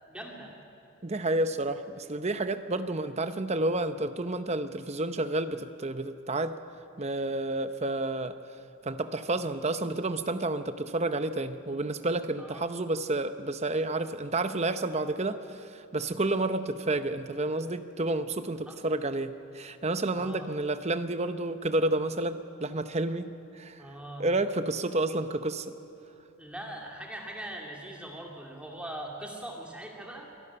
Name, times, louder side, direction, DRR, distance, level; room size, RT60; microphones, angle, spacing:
voice 1, 0.1-0.5 12.4-12.7 18.7-18.8 20.1-20.5 23.8-24.2 26.4-30.3, right 1 dB, 5° right, -1 dB, 2.5 m, -41 dB
voice 2, 1.0-6.6 7.0-8.4 8.8-23.9 24.2-25.7, right 2 dB, 30° right, 10 dB, 0.7 m, -30 dB
24.5 x 12.0 x 9.9 m, 2.8 s
head